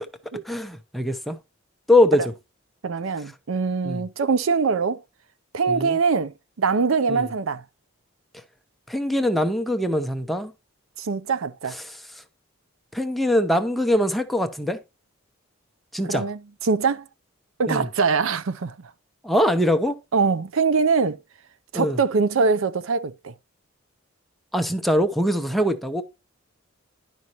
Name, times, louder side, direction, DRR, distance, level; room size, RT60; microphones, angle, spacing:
voice 1, 0.4-1.4 1.9-2.2 3.8-4.0 5.7-6.0 7.1-7.3 8.9-10.5 11.8-12.0 12.9-14.8 15.9-16.3 17.7-17.9 19.2-20.0 21.7-22.0 24.5-26.0, left 1 dB, ahead, 0.7 m, -22 dB
voice 2, 2.8-5.0 5.5-7.6 11.0-11.8 16.0-17.0 17.6-18.8 20.1-21.2 21.7-23.3, right 5 dB, 75° right, 0.5 m, -23 dB
11.0 x 5.3 x 2.9 m
head